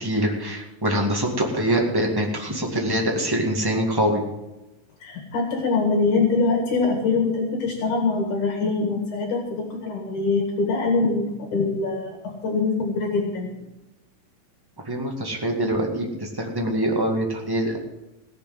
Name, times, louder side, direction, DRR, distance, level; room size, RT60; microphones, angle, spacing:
voice 1, 0.0-4.3 14.8-17.8, right 1 dB, 10° right, 0 dB, 1.0 m, -24 dB
voice 2, 5.0-13.5, left 3 dB, 65° left, 2 dB, 3.2 m, -23 dB
17.5 x 6.6 x 7.7 m, 1.0 s
omnidirectional pair, 4.0 m